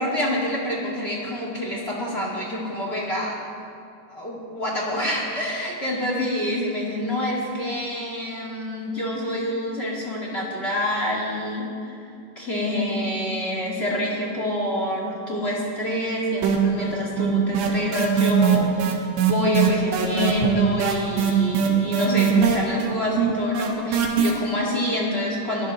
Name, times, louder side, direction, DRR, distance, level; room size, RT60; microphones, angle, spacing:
voice 1, 0.0-3.4 4.1-11.9 12.3-18.9 19.3-25.7, left 1 dB, 25° left, -3 dB, 1.3 m, -27 dB
sound 1, 16.4-16.9 17.2-24.3, right 8 dB, 80° right, 3.6 m, -21 dB
22.5 x 17.5 x 3.1 m, 2.5 s
omnidirectional pair, 4.9 m